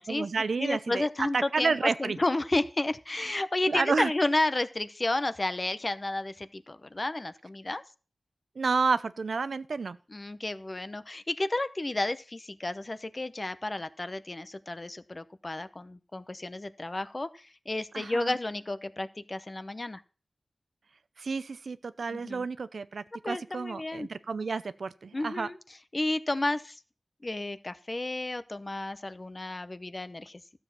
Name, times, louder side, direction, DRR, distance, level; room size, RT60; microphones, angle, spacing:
voice 1, 0.1-1.1 1.3-2.2 3.7-4.1 8.6-10.0 17.9-18.4 21.2-25.5, right 4 dB, 85° right, 14 dB, 0.6 m, -30 dB
voice 2, 0.6-7.8 10.1-20.0 22.1-22.4 23.2-24.1 25.1-25.6 25.9-26.8 27.2-30.4, left 2 dB, 35° left, 12 dB, 0.8 m, -32 dB
13.0 x 7.2 x 5.8 m, 0.36 s
wide cardioid pair, 75°, 0 cm